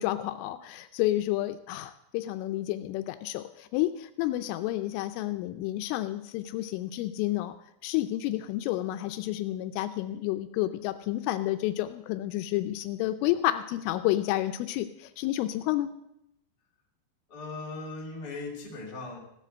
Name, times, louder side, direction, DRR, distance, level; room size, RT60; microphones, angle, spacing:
voice 1, 0.0-7.5 7.8-15.9, left 15 dB, 85° left, 9 dB, 3.1 m, -30 dB
voice 2, 17.3-19.2, left 3 dB, 25° left, -2 dB, 2.5 m, -38 dB
16.0 x 7.5 x 7.8 m, 0.78 s
omnidirectional pair, 5.7 m